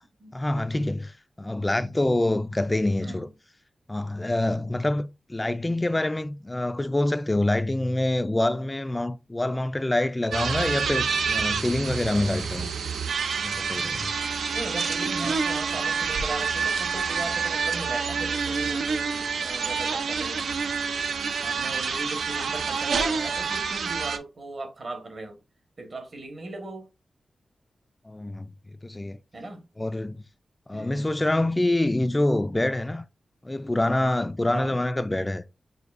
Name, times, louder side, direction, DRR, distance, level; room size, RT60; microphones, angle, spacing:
voice 1, 0.3-3.3 3.9-12.7 13.4-14.1 28.0-29.2 29.8-30.2 30.7-33.0 33.4-35.4, left 1 dB, 20° left, 0.3 m, -26 dB
sound 1, 10.3-24.2, right 5 dB, 85° right, 0.5 m, -28 dB
voice 2, 14.5-20.4 21.4-25.4 25.8-26.9 29.3-29.7 30.7-31.1 34.5-34.8, right 2 dB, 55° right, 1.3 m, -37 dB
6.5 x 2.7 x 2.5 m
wide cardioid pair, 85°, 0 cm